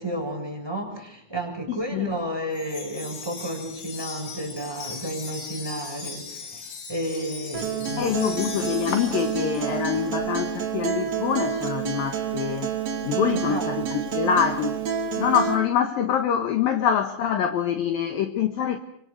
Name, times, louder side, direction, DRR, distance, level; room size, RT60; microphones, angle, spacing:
voice 1, 0.0-8.2 13.3-13.7, right 1 dB, 5° right, 3 dB, 6.4 m, -32 dB
voice 2, 1.7-2.1 8.0-12.7 13.0-14.8 15.2-18.8, left 8 dB, 70° left, 8 dB, 2.3 m, -25 dB
Wind chime, 2.5-10.0, left 5 dB, 90° left, 6.8 m, -39 dB
Acoustic guitar, 7.5-15.5, right 8 dB, 40° right, 3.3 m, -29 dB
28.0 x 25.0 x 6.6 m, 0.68 s
omnidirectional pair, 5.8 m